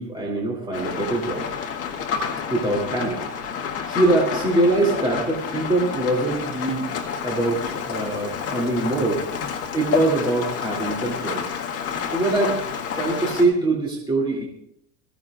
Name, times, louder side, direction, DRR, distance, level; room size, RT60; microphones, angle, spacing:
voice 1, 0.0-1.5 2.5-3.2 3.9-6.9 7.2-9.2 9.7-11.4 12.1-12.6 12.9-14.4, right 2 dB, 10° right, -3 dB, 2.6 m, -23 dB
Rain, 0.7-13.4, left 6 dB, 30° left, 1.7 m, -29 dB
22.5 x 15.5 x 2.4 m, 0.74 s
supercardioid pair, 155°, 43 cm